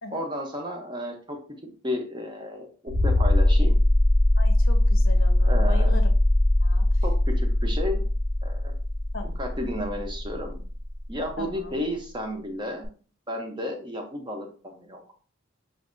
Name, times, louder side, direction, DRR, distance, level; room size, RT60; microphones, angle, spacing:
voice 1, 0.1-1.4 1.8-3.8 5.4-5.9 7.0-8.0 8.4-8.7 9.4-10.6 11.1-12.9 13.3-15.0, left 1 dB, 25° right, 3 dB, 0.7 m, -32 dB
sound 1, 2.9-11.3 12.8-12.9, left 1 dB, 60° right, 0.8 m, -21 dB
voice 2, 4.4-6.1 6.6-6.8 9.1-9.4 11.4-11.8, left 3 dB, 90° left, 4 dB, 0.8 m, -39 dB
5.2 x 2.6 x 2.5 m, 0.40 s
head